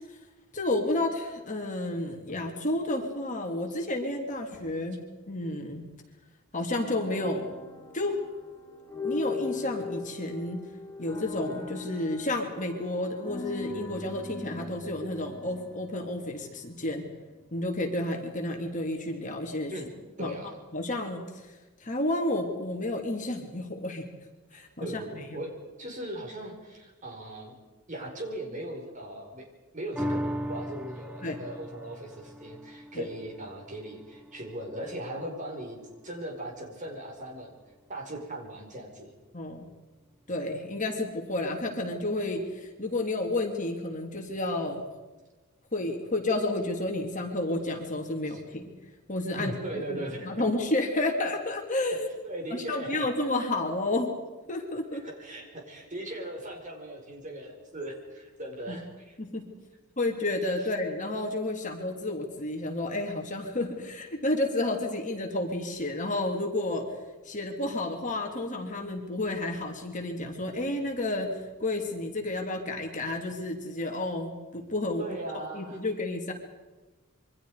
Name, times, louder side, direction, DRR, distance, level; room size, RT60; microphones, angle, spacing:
voice 1, 0.5-5.8 6.5-7.6 7.9-8.2 9.0-10.7 11.0-17.0 17.5-19.7 20.2-20.3 20.7-21.2 21.8-24.0 24.5-25.4 31.2-31.4 32.9-33.1 39.3-39.7 40.3-44.8 45.7-48.7 49.1-52.1 52.5-54.1 54.5-55.0 58.7-58.8 59.2-59.5 60.0-66.8 67.2-75.0 75.5-76.3, left 2 dB, 35° left, 2 dB, 3.1 m, -31 dB
sound 1, 6.7-16.8, left 4 dB, 15° left, 3.6 m, -40 dB
voice 2, 20.2-20.6 24.5-27.5 27.9-29.5 29.7-37.5 37.9-39.2 48.3-48.4 49.3-50.5 52.2-53.1 54.9-59.2 60.6-60.7 75.0-75.8, right 1 dB, 35° right, 1 dB, 5.4 m, -39 dB
sound 2, 30.0-36.6 37.1-37.2, equal, 5° right, 0.7 m, -39 dB
27.5 x 24.5 x 5.1 m, 1.2 s
head